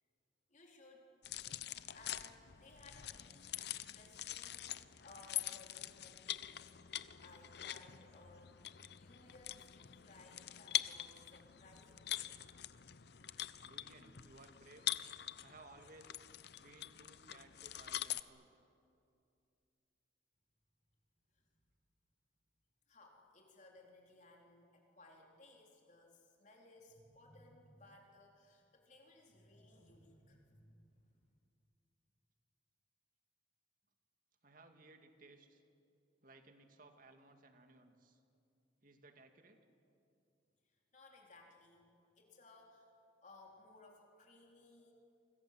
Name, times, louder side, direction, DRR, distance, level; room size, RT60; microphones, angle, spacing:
voice 1, 0.5-1.1 1.7-6.7 7.2-12.4 21.3-21.5 22.9-31.3 40.6-42.9 43.2-44.9, left 2 dB, 40° left, 0 dB, 4.1 m, -61 dB
sound 1, 1.2-18.2, left 13 dB, 60° left, 0.7 m, -44 dB
voice 2, 13.6-14.9 15.4-16.2 16.6-18.5 34.4-35.6 36.2-38.2 38.8-39.6, right 2 dB, 50° right, 6 dB, 2.3 m, -60 dB
28.5 x 25.5 x 7.7 m, 2.6 s
head